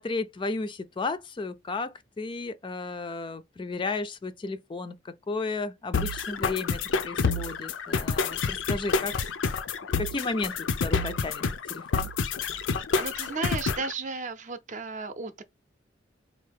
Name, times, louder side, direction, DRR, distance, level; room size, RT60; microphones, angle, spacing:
voice 1, 0.0-9.2 10.0-12.1, left 3 dB, 25° left, 0.3 m, -34 dB
sound 1, 5.9-13.9, left 4 dB, 90° left, 0.5 m, -28 dB
voice 2, 13.0-15.4, right 4 dB, 40° right, 0.6 m, -34 dB
4.4 x 2.7 x 3.4 m
head